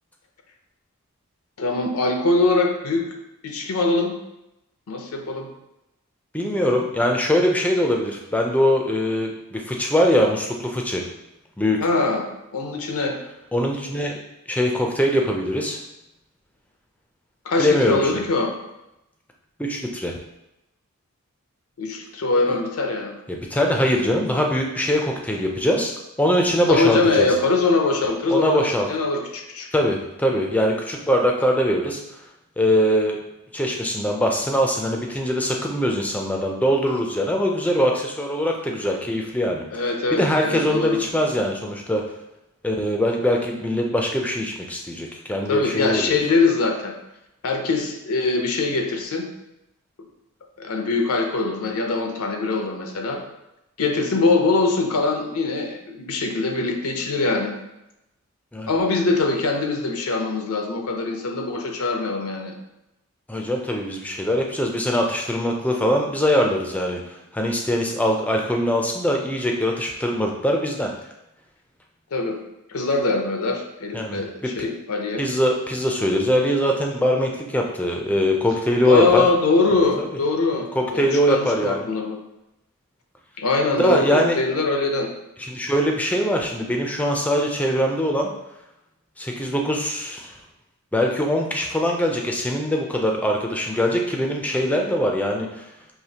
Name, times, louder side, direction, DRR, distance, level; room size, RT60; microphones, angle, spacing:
voice 1, 1.6-3.0 3.4-4.1 4.9-5.5 11.8-12.2 12.5-13.2 17.4-18.5 21.8-23.1 26.7-29.7 39.7-41.1 45.5-46.9 47.4-49.3 50.6-53.2 53.8-57.5 58.7-62.5 72.1-72.4 72.7-75.2 78.8-80.7 80.9-82.2 83.4-85.1, left 3 dB, 80° left, 3 dB, 0.6 m, -22 dB
voice 2, 6.3-11.0 11.6-11.8 13.5-14.2 14.5-15.8 17.6-18.1 19.6-20.2 22.5-22.6 23.3-25.9 26.2-27.3 28.3-28.9 29.7-32.0 32.6-33.2 33.5-39.8 40.1-42.0 42.6-46.2 58.5-58.7 63.3-70.9 73.9-74.7 75.2-79.3 80.0-80.2 80.8-81.9 83.8-84.4 85.4-88.3 89.2-90.3 90.9-95.6, equal, 5° left, 1 dB, 0.4 m, -22 dB
4.9 x 2.8 x 2.8 m, 0.91 s
head